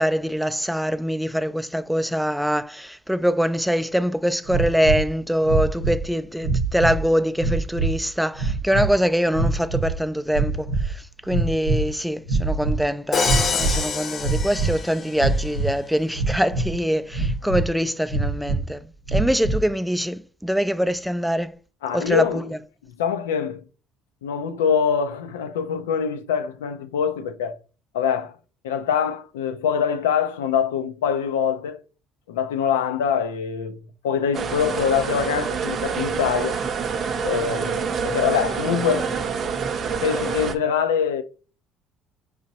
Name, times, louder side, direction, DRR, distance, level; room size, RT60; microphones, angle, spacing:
voice 1, 0.0-21.6 21.9-22.6, equal, ahead, 0.3 m, -24 dB
sound 1, 4.5-5.1 5.4-6.1 6.4-7.0 7.4-8.0 8.4-8.9 9.3-10.0 10.3-10.9 11.2-11.9 12.2-12.8 13.2-13.8 14.2-14.8 15.2-15.7 16.2-16.8 17.1-17.7 18.1-18.6 19.1-19.6, right 3 dB, 90° right, 0.9 m, -24 dB
Crash cymbal, 13.1-15.3, left 5 dB, 45° left, 0.7 m, -26 dB
voice 2, 21.8-22.4 23.0-23.6 24.2-27.6 27.9-28.4 28.6-31.8 32.3-33.8 34.0-36.6 37.2-39.1 40.0-41.2, left 7 dB, 85° left, 0.4 m, -24 dB
sound 2, 34.3-40.6, right 6 dB, 50° right, 0.6 m, -27 dB
4.8 x 2.9 x 2.7 m
hypercardioid pair, 60°, 0 cm